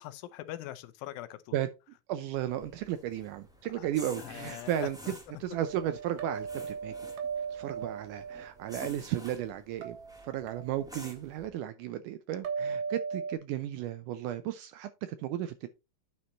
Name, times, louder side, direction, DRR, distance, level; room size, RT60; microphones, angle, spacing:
voice 1, 0.0-1.6 3.8-3.9 4.2-5.1, left 14 dB, 80° left, 2.4 m, -42 dB
voice 2, 2.1-5.0 5.4-6.9 7.5-10.0 10.2-15.7, right 12 dB, 85° right, 1.8 m, -34 dB
sound 1, 2.3-11.5, equal, 5° right, 0.3 m, -51 dB
sound 2, 5.6-8.8 9.8-11.1 12.4-13.4, right 6 dB, 65° right, 2.7 m, -38 dB
9.6 x 4.5 x 4.0 m
omnidirectional pair, 4.3 m